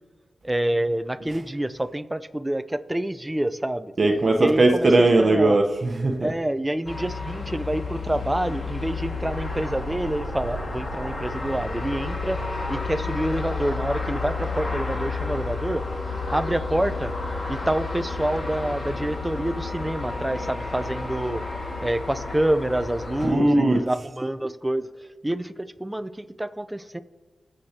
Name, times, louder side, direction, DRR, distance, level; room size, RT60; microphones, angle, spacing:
voice 1, 0.4-3.9 4.4-5.6 6.2-12.4 12.7-15.8 16.3-17.2 17.5-21.4 21.8-27.0, right 1 dB, 15° right, 13 dB, 0.7 m, -27 dB
voice 2, 4.0-6.3 23.2-23.8, right 2 dB, 55° right, 4 dB, 1.0 m, -19 dB
sound 1, 6.9-23.3, left 3 dB, 55° left, 2.0 m, -31 dB
22.5 x 7.9 x 3.0 m, 1.3 s
cardioid pair, 45°, 0 cm